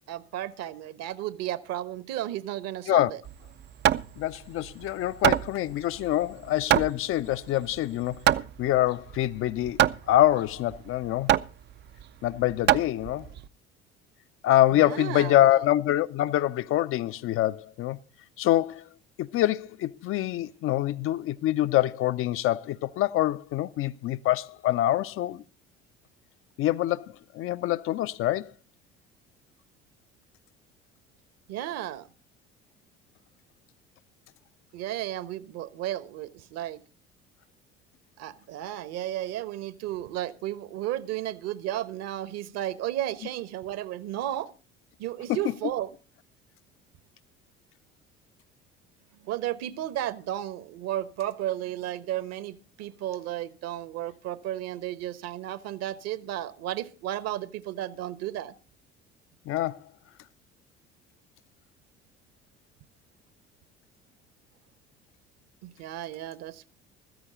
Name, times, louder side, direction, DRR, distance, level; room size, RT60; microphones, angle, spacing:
voice 1, 0.1-3.2 14.7-15.6 31.5-32.1 34.7-36.8 38.2-44.5 45.0-45.9 49.2-58.5 65.6-66.7, right 13 dB, 50° right, 1.2 m, -33 dB
Hammer, 3.2-13.5, right 12 dB, 35° right, 0.6 m, -27 dB
voice 2, 4.2-8.2 8.6-9.8 10.1-11.3 12.2-13.3 14.4-18.0 18.4-18.8 19.2-25.4 26.6-28.5 45.3-45.4 59.5-59.8, left 14 dB, 40° left, 0.6 m, -25 dB
15.5 x 14.0 x 3.9 m
figure-of-eight pair, 60°, 33 cm